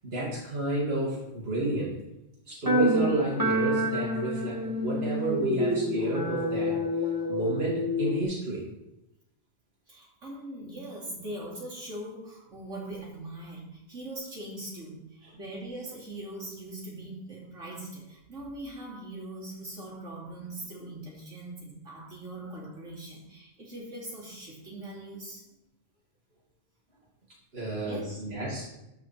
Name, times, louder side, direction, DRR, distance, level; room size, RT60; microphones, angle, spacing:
voice 1, 0.0-2.0 2.5-6.8 7.3-8.7 27.5-28.7, right 2 dB, 50° right, -6 dB, 2.8 m, -31 dB
sound 1, 2.7-8.2, equal, 15° right, 1.1 m, -27 dB
voice 2, 9.9-25.4 27.6-28.2, right 1 dB, 70° right, -5 dB, 3.3 m, -41 dB
12.5 x 5.6 x 4.5 m, 0.90 s
omnidirectional pair, 1.3 m